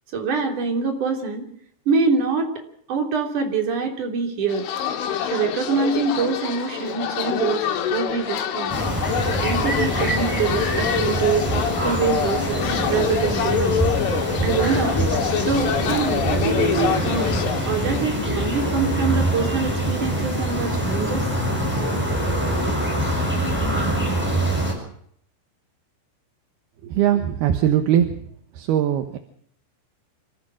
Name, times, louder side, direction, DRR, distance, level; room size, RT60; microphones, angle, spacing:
voice 1, 0.1-1.4 1.9-2.5 2.9-4.7 5.3-8.7 9.4-11.5 11.8-13.8 14.4-15.0 15.4-17.3 17.7-21.3, right 5 dB, 45° right, 3 dB, 4.6 m, -24 dB
sound 1, 4.5-18.2, left 9 dB, 85° left, 4.4 m, -26 dB
sound 2, 8.7-24.7, right 1 dB, ahead, 7.0 m, -24 dB
voice 2, 26.8-28.1 28.6-29.2, right 10 dB, 70° right, 7 dB, 2.8 m, -20 dB
27.0 x 15.0 x 6.4 m, 0.66 s
omnidirectional pair, 5.5 m